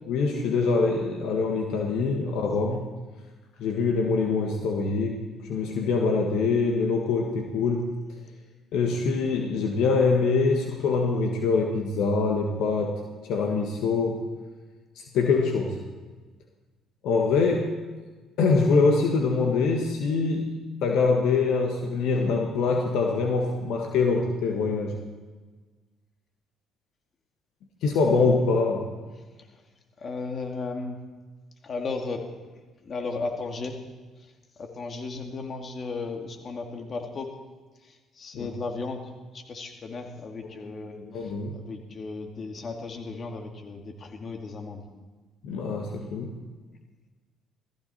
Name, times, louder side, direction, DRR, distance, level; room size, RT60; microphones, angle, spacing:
voice 1, 0.1-2.9 3.6-5.2 5.5-7.8 8.7-14.2 14.9-15.8 17.0-17.7 18.4-20.5 20.8-25.0 27.8-28.9 38.3-38.5 41.0-41.5 45.4-46.3, left 4 dB, 70° left, 2 dB, 1.7 m, -24 dB
voice 2, 30.0-31.0 31.6-32.2 32.5-33.8 34.2-34.3 34.6-37.3 37.8-44.8, left 3 dB, 45° left, 3 dB, 2.5 m, -35 dB
17.5 x 15.0 x 4.4 m, 1.3 s
hypercardioid pair, 55°, 0 cm